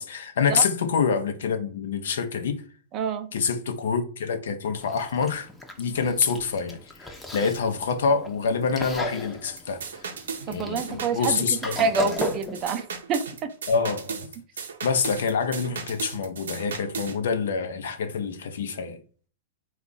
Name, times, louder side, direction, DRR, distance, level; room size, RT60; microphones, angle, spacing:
voice 1, 0.0-2.6 3.3-5.5 5.8-9.8 10.5-12.2 13.7-14.3 14.8-19.0, left 5 dB, 80° left, 0.5 m, -26 dB
voice 2, 2.9-3.3 10.5-11.4 11.8-12.8 13.1-13.5, right 5 dB, 35° right, 0.5 m, -27 dB
Chewing mastication, 4.8-12.7, equal, 10° left, 0.6 m, -36 dB
sound 1, 9.6-17.2, right 6 dB, 85° right, 0.6 m, -36 dB
3.6 x 2.3 x 3.9 m
hypercardioid pair, 125°, 0 cm